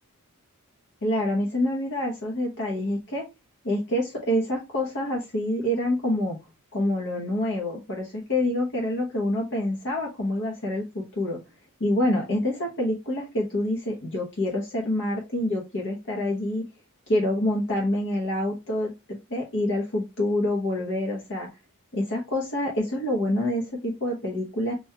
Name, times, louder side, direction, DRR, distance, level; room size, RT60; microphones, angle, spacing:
voice 1, 1.0-3.2 3.6-6.4 6.7-11.4 11.8-16.6 17.1-21.5 21.9-24.7, left 1 dB, 55° left, -1 dB, 0.9 m, -27 dB
6.0 x 2.3 x 2.8 m, 0.25 s
head